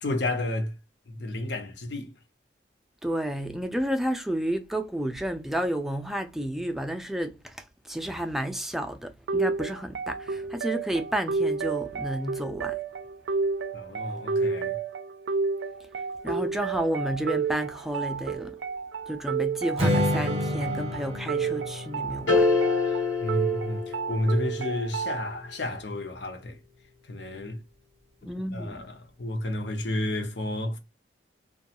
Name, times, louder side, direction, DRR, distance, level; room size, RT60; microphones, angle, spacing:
voice 1, 0.0-0.7 1.1-2.1 13.7-14.8 23.2-26.6 27.1-27.6 28.5-30.8, left 1 dB, 70° left, 0.7 m, -31 dB
voice 2, 3.0-12.8 16.2-18.6 19.1-22.5 28.3-28.8, right 1 dB, ahead, 0.3 m, -31 dB
sound 1, 9.3-25.3, right 5 dB, 85° right, 0.4 m, -31 dB
Strum, 19.8-25.0, left 1 dB, 30° right, 0.6 m, -31 dB
sound 2, 22.3-24.5, left 4 dB, 90° left, 1.1 m, -26 dB
2.4 x 2.2 x 2.8 m
head